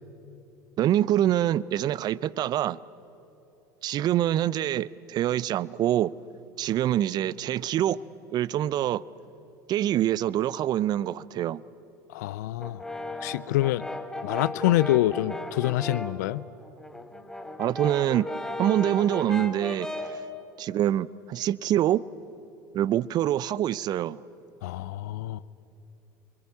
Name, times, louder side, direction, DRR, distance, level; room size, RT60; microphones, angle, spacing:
voice 1, 0.8-2.8 3.8-6.1 6.6-8.0 8.3-9.0 9.7-11.6 17.6-18.3 18.6-19.9 20.6-22.0 22.7-24.2, right 12 dB, 45° right, 0.6 m, -25 dB
voice 2, 12.1-12.8 13.2-13.8 14.2-16.4 24.6-25.4, left 15 dB, 75° left, 0.6 m, -26 dB
Brass instrument, 12.6-16.2 16.6-20.2, left 1 dB, 5° left, 2.1 m, -36 dB
26.5 x 23.0 x 8.5 m
hypercardioid pair, 75°, 10 cm